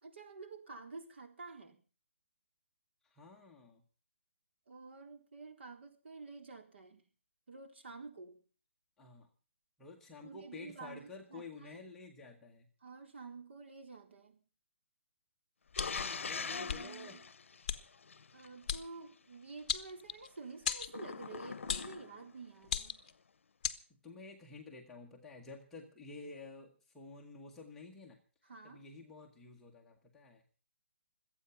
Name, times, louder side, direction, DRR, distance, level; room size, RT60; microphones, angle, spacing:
voice 1, 0.0-1.8 4.7-7.1 7.5-8.4 10.2-11.9 12.8-14.4 16.4-17.3 18.3-23.0 28.4-28.9, right 4 dB, 60° right, 5 dB, 3.9 m, -50 dB
voice 2, 3.0-3.8 9.0-9.3 9.8-12.7 16.0-17.2 23.9-28.2 28.6-30.4, left 3 dB, 5° left, -1 dB, 1.3 m, -51 dB
sound 1, 15.7-18.5 20.9-22.3, left 5 dB, 80° left, 0.7 m, -42 dB
sound 2, 15.7-16.1 16.7-16.8 17.7-17.8 18.7-18.8 19.7-20.3 20.6-20.9 21.7-21.9 22.6-23.1 23.6-23.8, left 7 dB, 35° left, 1.1 m, -36 dB
25.5 x 8.9 x 5.8 m, 0.38 s
hypercardioid pair, 175°, 7 cm